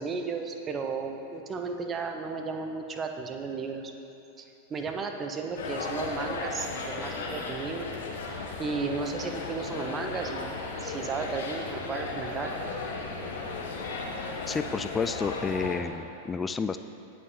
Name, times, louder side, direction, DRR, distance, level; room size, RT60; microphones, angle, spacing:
voice 1, 0.0-3.9 4.4-7.9 8.6-12.8, right 4 dB, 25° right, 4 dB, 0.9 m, -34 dB
sound 1, 5.6-15.8, left 3 dB, 60° left, 1.4 m, -35 dB
voice 2, 14.5-16.8, left 5 dB, 15° left, 10 dB, 0.3 m, -30 dB
18.0 x 6.3 x 3.9 m, 2.8 s
figure-of-eight pair, 90°, 0 cm